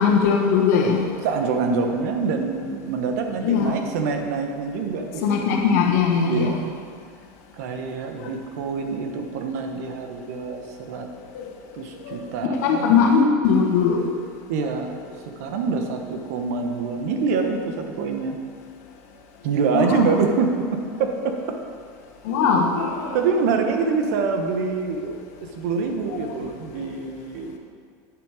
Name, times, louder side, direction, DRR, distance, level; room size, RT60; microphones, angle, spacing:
voice 1, 0.0-1.1 3.4-3.7 5.2-6.6 8.2-8.3 11.3-11.5 12.0-12.2 12.5-14.0 19.7-20.1 22.2-23.2 26.8-26.9, left 6 dB, 75° left, 1 dB, 1.5 m, -20 dB
voice 2, 1.2-5.5 6.2-6.7 7.5-11.1 11.7-13.1 14.5-15.0 15.4-18.4 19.4-21.6 23.1-25.1 25.5-27.6, right 4 dB, 75° right, 4 dB, 1.3 m, -25 dB
9.3 x 7.5 x 5.0 m, 2.2 s
supercardioid pair, 160°, 9 cm